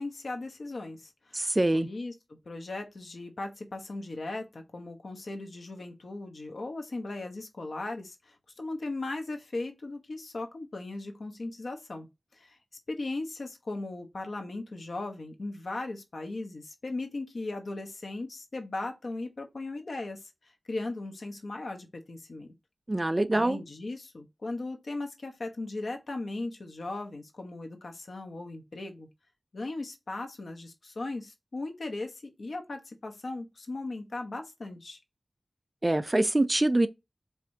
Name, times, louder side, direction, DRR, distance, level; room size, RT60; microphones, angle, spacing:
voice 1, 0.0-12.6 12.9-20.3 20.7-22.5 23.3-29.1 29.5-35.0, left 2 dB, 75° left, 1.0 m, -38 dB
voice 2, 1.3-1.9 22.9-23.6 35.8-36.9, right 1 dB, 25° right, 0.4 m, -24 dB
4.8 x 3.3 x 2.8 m
wide cardioid pair, 85°, 0 cm